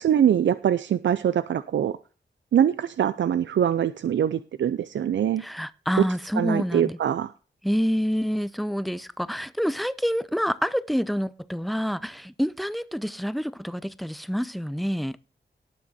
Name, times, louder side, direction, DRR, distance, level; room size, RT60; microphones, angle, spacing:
voice 1, 0.0-2.0 2.5-5.4 6.0-6.1 6.4-7.3, right 9 dB, 85° right, 0.5 m, -23 dB
voice 2, 5.4-7.0 7.6-15.2, equal, ahead, 0.6 m, -27 dB
18.5 x 6.2 x 4.2 m
wide cardioid pair, 95°, 19 cm